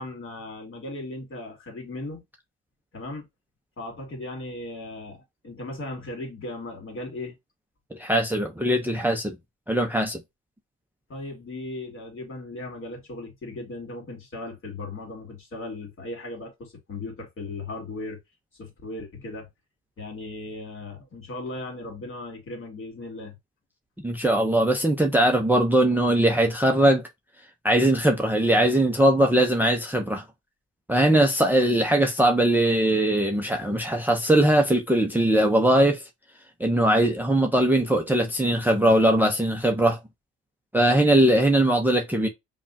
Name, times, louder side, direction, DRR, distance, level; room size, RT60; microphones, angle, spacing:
voice 1, 0.0-2.2 2.9-3.3 3.8-7.4 11.1-18.2 18.6-19.5 20.0-23.4, left 2 dB, 45° left, 2.2 m, -37 dB
voice 2, 7.9-9.4 9.7-10.2 24.0-27.0 27.6-30.2 30.9-36.0 36.6-40.0 40.7-42.3, right 1 dB, 5° right, 0.7 m, -20 dB
5.3 x 2.4 x 2.7 m
cardioid pair, 90°, 30 cm